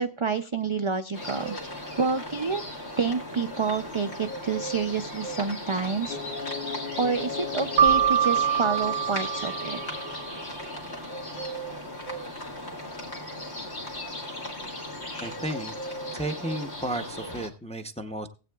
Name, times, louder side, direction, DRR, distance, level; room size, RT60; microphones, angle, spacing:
voice 1, 0.0-1.6 2.0-2.6 3.0-6.2 7.0-9.8, right 5 dB, 45° right, 7 dB, 0.4 m, -28 dB
sound 1, 1.1-17.5, equal, 85° left, 2.0 m, -37 dB
sound 2, 6.1-10.8, left 5 dB, 50° left, 1.0 m, -38 dB
Keyboard (musical), 7.8-10.3, right 9 dB, 65° right, 0.9 m, -24 dB
voice 2, 15.2-15.7 16.1-18.3, right 1 dB, 10° left, 7 dB, 0.5 m, -33 dB
18.5 x 8.3 x 2.3 m, 0.33 s
omnidirectional pair, 1.1 m